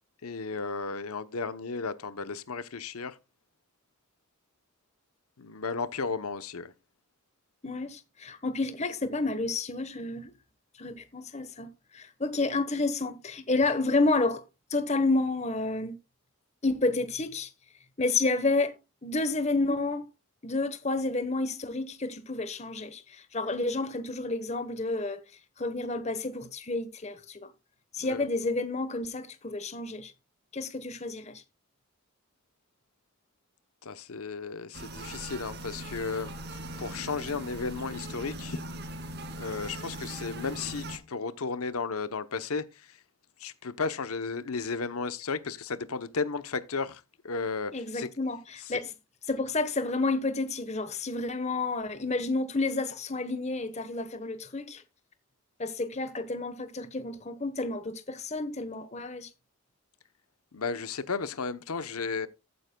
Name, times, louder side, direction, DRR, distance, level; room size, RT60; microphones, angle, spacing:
voice 1, 0.2-3.2 5.4-6.7 28.0-28.3 33.8-38.6 39.4-43.0 43.4-48.1 48.7-48.8 60.5-62.3, left 4 dB, 85° left, 0.8 m, -34 dB
voice 2, 7.6-10.3 10.8-14.4 14.7-16.0 16.6-17.5 18.0-18.7 19.0-20.1 20.4-25.2 25.6-27.5 27.9-30.1 30.5-31.4 47.7-48.9 49.3-54.8 55.6-59.3, left 3 dB, 30° left, 1.1 m, -30 dB
sound 1, 34.7-41.0, right 1 dB, 50° right, 2.1 m, -40 dB
14.5 x 9.7 x 2.2 m
head